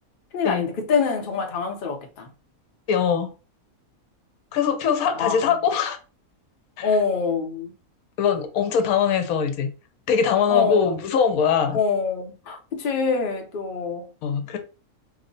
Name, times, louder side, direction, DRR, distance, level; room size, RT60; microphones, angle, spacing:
voice 1, 0.3-2.3 5.2-5.5 6.8-7.7 10.5-11.0 11.7-14.1, left 5 dB, 50° left, 0.6 m, -25 dB
voice 2, 2.9-3.3 4.5-6.0 6.8-7.0 8.2-9.7 10.1-11.8 14.2-14.6, left 7 dB, 80° left, 1.0 m, -22 dB
3.0 x 2.1 x 3.8 m
omnidirectional pair, 1.5 m